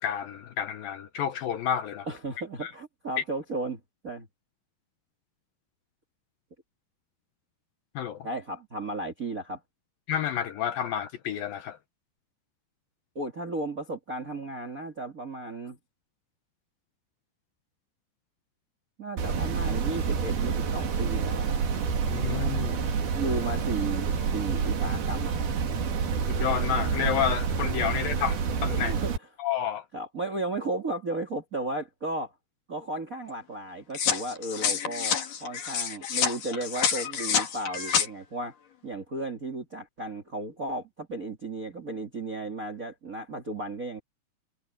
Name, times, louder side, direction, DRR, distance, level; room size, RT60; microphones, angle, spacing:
voice 1, 0.0-2.1 2.6-2.7 8.0-8.3 10.1-11.8 22.0-22.8 26.3-28.9 29.4-29.9, left 9 dB, 70° left, 2.4 m, -30 dB
voice 2, 2.1-4.3 8.2-9.6 13.1-15.8 19.0-21.6 23.1-25.5 28.7-29.1 29.9-32.3 32.7-38.5 38.8-44.0, right 2 dB, 35° right, 1.4 m, -34 dB
sound 1, 19.2-29.2, right 6 dB, 60° right, 4.6 m, -28 dB
sound 2, 33.9-38.1, left 7 dB, 55° left, 3.7 m, -28 dB
omnidirectional pair, 5.0 m